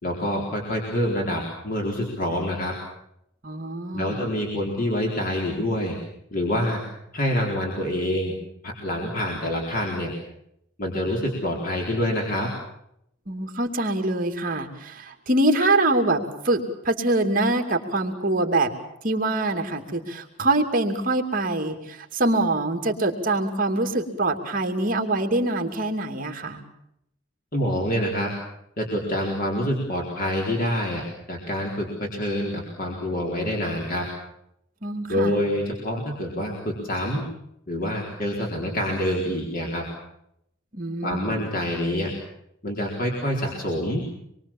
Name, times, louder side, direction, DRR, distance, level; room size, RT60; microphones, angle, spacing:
voice 1, 0.0-2.7 3.9-6.0 6.3-6.8 7.1-8.3 8.6-10.1 10.8-12.5 27.5-28.3 28.8-31.0 31.3-34.0 35.1-37.2 37.7-39.8 41.0-42.1 42.6-44.0, left 1 dB, 45° left, -1 dB, 4.2 m, -26 dB
voice 2, 3.4-4.3 13.3-18.7 19.0-26.6 34.8-35.4 40.7-41.4, right 2 dB, 45° right, 4 dB, 2.8 m, -24 dB
26.5 x 23.0 x 7.4 m, 0.77 s
head